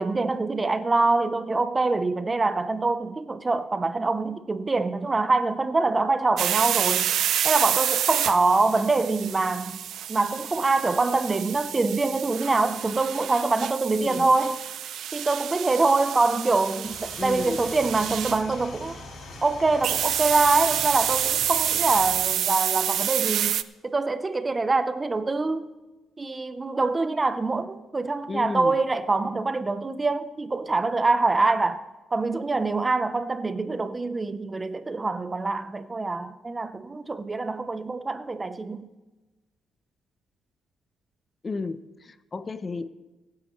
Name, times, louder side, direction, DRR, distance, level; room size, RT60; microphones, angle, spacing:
voice 1, 0.0-7.1 7.4-9.8 10.1-14.6 15.1-19.0 19.4-23.6 23.8-25.7 26.2-38.9, right 3 dB, 25° right, 0.7 m, -25 dB
sound 1, 6.4-18.4 19.8-23.6, right 10 dB, 75° right, 0.5 m, -28 dB
voice 2, 13.9-14.3 17.2-17.7 28.3-28.8 41.4-42.9, left 4 dB, 35° left, 0.6 m, -33 dB
sound 2, 16.8-22.3, left 2 dB, 65° left, 4.4 m, -42 dB
24.5 x 9.6 x 3.1 m
cardioid pair, 90°, 0 cm